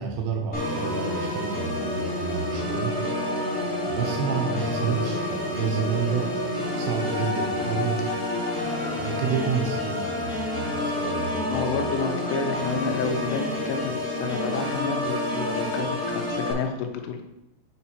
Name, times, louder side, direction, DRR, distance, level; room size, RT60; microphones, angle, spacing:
voice 1, 0.0-3.0 3.9-6.5 6.8-8.1 9.0-11.8, right 6 dB, 75° right, 3 dB, 2.6 m, -30 dB
Organ, 0.5-16.5, left 1 dB, 60° left, 0.6 m, -28 dB
voice 2, 11.5-17.2, left 5 dB, 80° left, 4 dB, 3.2 m, -30 dB
8.5 x 4.4 x 4.3 m, 0.88 s
omnidirectional pair, 5.4 m